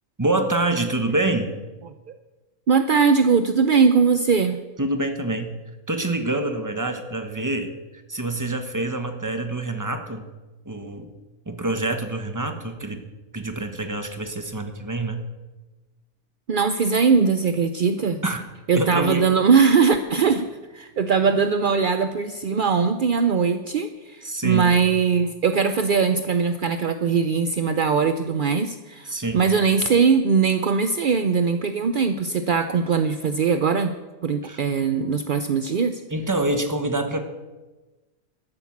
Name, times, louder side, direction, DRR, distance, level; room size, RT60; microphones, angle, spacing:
voice 1, 0.2-1.5 4.8-5.6 5.9-7.7 8.1-10.3 10.6-11.1 11.5-13.0 13.3-15.3 18.2-18.4 18.7-19.2 24.2-24.7 29.0-29.5 34.4-34.6 36.1-37.2, right 2 dB, 15° right, 6 dB, 1.1 m, -26 dB
voice 2, 2.7-4.6 16.5-18.2 18.7-20.5 20.7-33.9 34.2-36.0, right 5 dB, 60° right, 9 dB, 0.5 m, -20 dB
13.0 x 9.9 x 7.3 m, 1.2 s
omnidirectional pair, 1.6 m